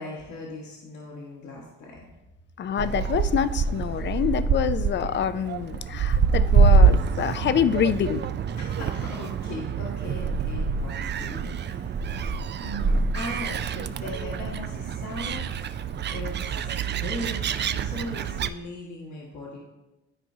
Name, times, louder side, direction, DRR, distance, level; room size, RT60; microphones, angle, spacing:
voice 1, 0.0-2.1 8.6-12.1 12.6-19.6, left 2 dB, 65° left, -4 dB, 1.6 m, -38 dB
voice 2, 2.6-8.3, left 8 dB, 40° left, 13 dB, 0.4 m, -26 dB
Gull seagull, 2.8-18.5, right 5 dB, 35° right, 0.4 m, -25 dB
13.0 x 4.6 x 2.7 m, 1.0 s
cardioid pair, 90°, 30 cm